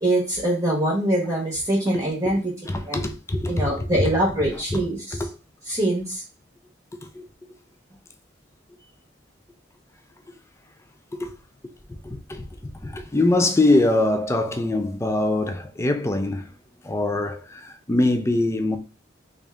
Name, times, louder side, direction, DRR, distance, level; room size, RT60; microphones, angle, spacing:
voice 1, 0.0-2.4 2.9-3.0 3.5-5.2 5.7-6.2, right 1 dB, 15° right, 1.0 m, -23 dB
voice 2, 2.6-3.9 4.5-4.8 5.1-5.3 7.0-7.3 11.2-11.4 12.0-12.5 12.8-16.5 16.8-18.8, left 2 dB, 15° left, 0.4 m, -23 dB
3.5 x 2.6 x 3.5 m
head